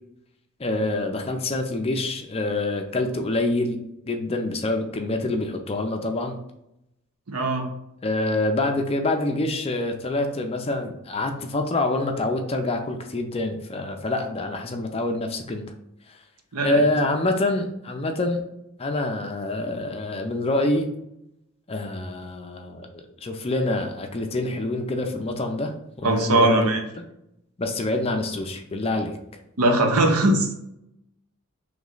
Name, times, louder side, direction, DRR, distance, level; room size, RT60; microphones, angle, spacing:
voice 1, 0.6-3.8 4.0-6.4 8.0-15.7 16.1-16.2 16.6-18.4 18.8-20.9 21.7-26.7 27.6-29.2, left 2 dB, 25° left, 4 dB, 0.4 m, -26 dB
voice 2, 7.3-7.7 16.5-16.8 26.0-26.8 29.6-30.6, right 1 dB, 85° right, 4 dB, 0.8 m, -20 dB
3.2 x 3.1 x 3.8 m, 0.82 s
head